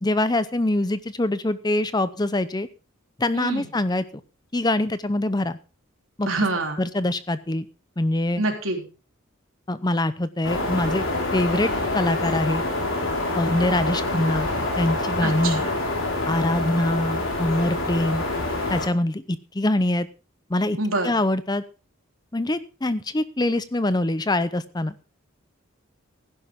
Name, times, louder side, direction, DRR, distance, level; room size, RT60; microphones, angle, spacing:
voice 1, 0.0-2.7 3.2-4.0 4.5-5.6 6.2-6.3 6.8-7.6 8.0-8.4 9.7-11.1 11.3-12.6 13.3-14.5 14.8-15.6 16.3-18.2 18.7-20.1 20.5-20.8 21.0-21.6 22.3-24.9, left 1 dB, 20° left, 14 dB, 0.6 m, -24 dB
voice 2, 3.3-3.7 6.3-6.8 8.4-8.9 15.2-15.7 20.8-21.1, right 2 dB, 75° right, 3 dB, 3.5 m, -26 dB
sound 1, 10.4-18.9, left 2 dB, 70° left, 4.5 m, -26 dB
15.5 x 11.0 x 3.7 m, 0.32 s
head